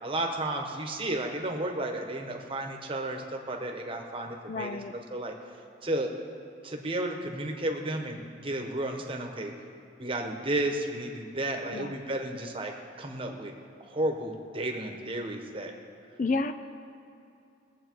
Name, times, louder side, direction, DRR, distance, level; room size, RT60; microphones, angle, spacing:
voice 1, 0.0-4.8 5.1-5.3 5.8-6.1 6.6-9.5 10.0-12.7 13.0-13.5 13.9-15.7, right 1 dB, 30° right, 2 dB, 1.2 m, -32 dB
voice 2, 4.5-4.9 11.7-11.9 16.2-16.5, left 3 dB, 40° left, 9 dB, 0.4 m, -30 dB
20.0 x 7.8 x 4.6 m, 2.7 s
head